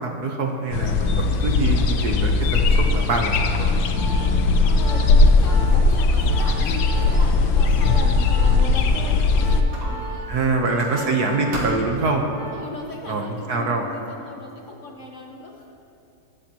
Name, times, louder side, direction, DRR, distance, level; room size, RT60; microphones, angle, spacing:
voice 1, 0.0-3.8 10.3-12.2 13.1-13.8, right 3 dB, 55° right, 2 dB, 1.4 m, -24 dB
sound 1, 0.7-9.6, left 3 dB, 80° left, 1.6 m, -18 dB
Organ, 3.2-12.9 13.2-13.5, right 2 dB, 25° left, 2.2 m, -39 dB
voice 2, 4.6-11.8 12.5-15.7, left 2 dB, 45° left, 0 dB, 1.4 m, -37 dB
Squeak, 5.6-9.2 9.7-11.2 11.5-12.1, right 2 dB, 75° right, 3.1 m, -37 dB
21.0 x 14.0 x 3.0 m, 2.7 s
omnidirectional pair, 2.2 m